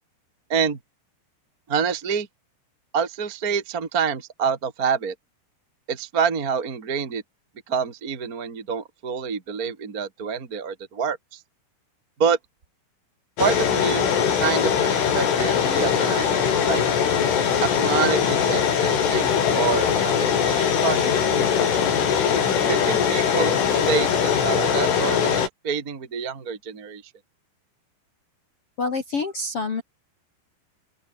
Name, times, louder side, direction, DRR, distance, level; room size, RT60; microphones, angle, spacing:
voice 1, 1.7-2.3 2.9-5.1 5.9-7.2 7.7-11.4 12.2-12.4 13.4-16.8 17.6-21.7 22.7-27.0, right 6 dB, 40° right, 1.3 m, -27 dB
sound 1, 13.4-25.5, left 7 dB, 80° left, 6.8 m, -21 dB
voice 2, 28.8-29.8, left 3 dB, 45° left, 2.1 m, -27 dB
open air
omnidirectional pair, 5.6 m